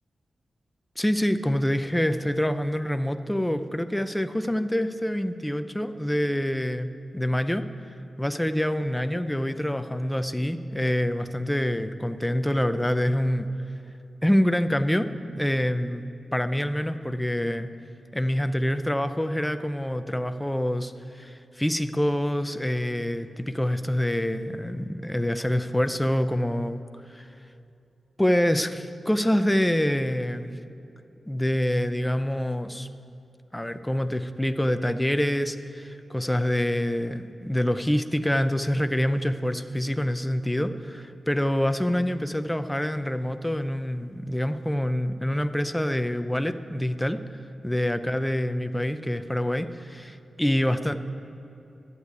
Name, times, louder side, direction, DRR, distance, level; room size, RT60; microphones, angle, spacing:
voice 1, 1.0-7.6 8.2-13.5 14.2-16.0 16.3-17.7 18.1-26.8 27.1-27.3 28.2-30.5 31.3-32.9 33.5-47.2 47.6-50.9, equal, 5° left, 10 dB, 0.5 m, -26 dB
10.5 x 8.3 x 9.5 m, 2.7 s
wide cardioid pair, 140°, 0 cm